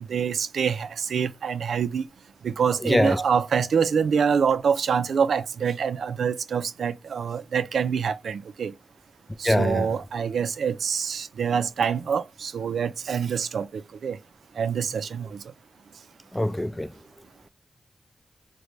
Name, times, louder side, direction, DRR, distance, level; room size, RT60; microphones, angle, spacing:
voice 1, 0.1-2.1 2.4-8.7 9.4-14.2 14.6-15.4, right 6 dB, 85° right, 0.3 m, -26 dB
voice 2, 2.8-3.2 9.4-9.9 16.3-16.9, left 1 dB, 15° left, 0.4 m, -22 dB
3.8 x 2.2 x 3.1 m
cardioid pair, 50°, 0 cm